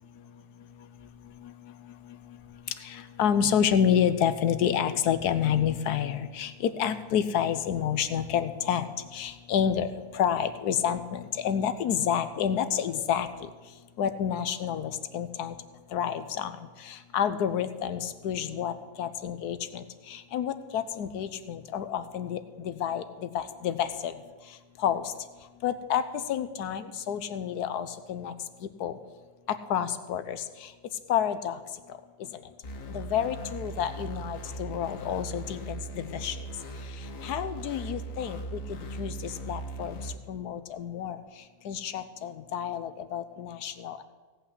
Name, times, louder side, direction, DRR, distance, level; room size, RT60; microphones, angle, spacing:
voice 1, 2.8-8.9 9.1-9.9 10.1-13.5 14.0-15.5 15.9-16.6 16.9-18.7 19.0-24.1 24.8-25.0 25.6-28.3 28.8-28.9 29.7-30.4 31.1-31.6 32.9-36.4 37.2-38.6 39.0-40.0 40.3-41.2 41.6-44.0, left 8 dB, 75° left, 11 dB, 1.3 m, -29 dB
sound 1, 32.6-40.1, right 2 dB, 55° left, 1.5 m, -39 dB
17.0 x 5.8 x 8.1 m, 1.3 s
omnidirectional pair, 1.8 m